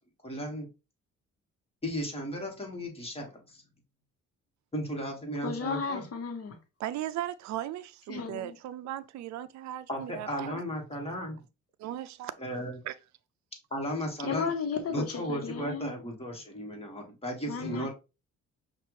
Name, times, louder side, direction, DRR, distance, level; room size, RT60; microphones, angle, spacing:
voice 1, 0.2-0.7 1.8-3.6 4.7-6.0 9.9-11.4 12.4-12.8 13.7-14.5 14.9-17.9, equal, 20° left, 1.7 m, -35 dB
voice 2, 5.4-6.6 8.1-8.6 14.2-15.9 17.5-17.9, left 5 dB, 50° left, 1.1 m, -33 dB
voice 3, 6.8-10.6 11.8-12.3 12.8-12.9, right 13 dB, 65° right, 0.5 m, -37 dB
5.6 x 2.5 x 3.1 m
cardioid pair, 90°, 30 cm